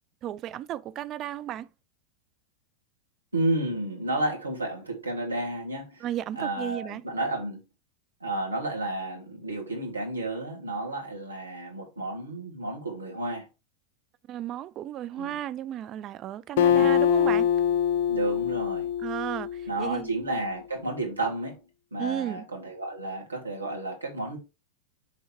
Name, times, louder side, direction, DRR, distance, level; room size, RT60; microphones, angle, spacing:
voice 1, 0.2-1.7 6.0-7.0 14.3-17.5 19.0-20.1 22.0-22.5, right 11 dB, 35° right, 0.4 m, -34 dB
voice 2, 3.3-6.0 6.3-7.6 8.2-13.5 15.1-15.4 16.6-17.0 18.1-18.9 19.7-21.6 21.9-24.4, right 2 dB, 80° right, 2.4 m, -31 dB
Acoustic guitar, 16.6-20.2, left 9 dB, 50° left, 0.5 m, -24 dB
6.3 x 3.9 x 4.5 m
figure-of-eight pair, 90°, 0 cm